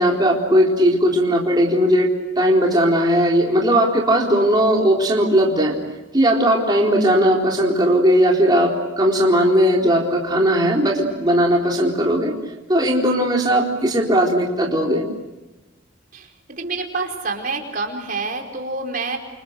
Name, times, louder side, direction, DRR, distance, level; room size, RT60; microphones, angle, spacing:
voice 1, 0.0-2.1 2.4-5.8 6.1-12.3 12.7-15.0, equal, 20° right, -2 dB, 3.9 m, -17 dB
voice 2, 16.6-19.2, right 3 dB, 45° right, 2 dB, 4.8 m, -27 dB
30.0 x 28.5 x 6.7 m, 1.1 s
head